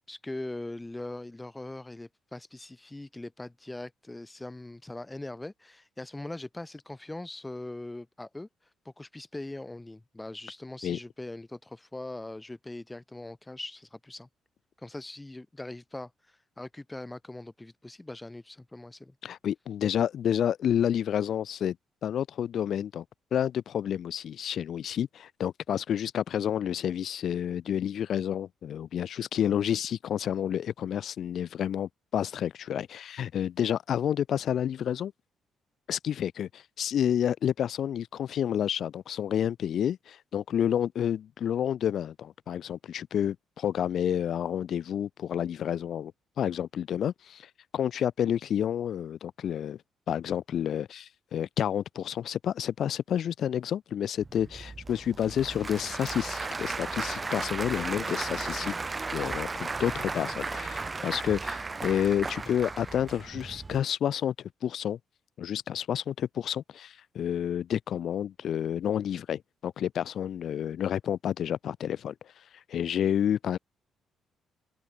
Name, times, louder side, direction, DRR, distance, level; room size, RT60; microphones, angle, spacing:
voice 1, 0.1-8.5 8.9-14.3 14.8-16.1 16.6-19.1, left 2 dB, 15° left, 1.7 m, -41 dB
voice 2, 19.2-21.8 22.0-23.0 23.3-35.1 35.9-46.1 46.4-49.8 50.1-58.7 59.1-65.0 65.4-72.1 72.7-73.6, left 9 dB, 65° left, 0.8 m, -30 dB
Applause / Crowd, 54.2-63.8, right 3 dB, 25° right, 2.3 m, -35 dB
open air
cardioid pair, 90°, 0 cm